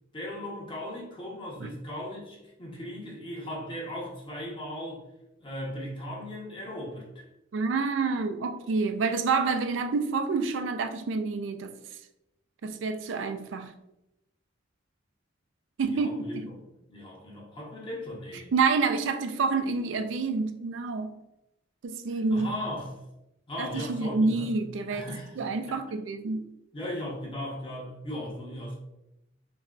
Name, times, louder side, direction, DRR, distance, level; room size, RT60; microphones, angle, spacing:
voice 1, 0.1-5.0 5.4-7.3 15.8-16.4 16.9-18.5 22.3-23.0 23.5-24.5 24.9-25.8 26.7-28.7, left 1 dB, 30° left, 1.0 m, -37 dB
voice 2, 7.5-11.8 12.6-13.7 15.8-16.5 18.5-21.1 21.8-22.5 23.6-25.1 25.4-26.5, right 4 dB, 90° right, 0.4 m, -28 dB
5.4 x 2.2 x 2.5 m
head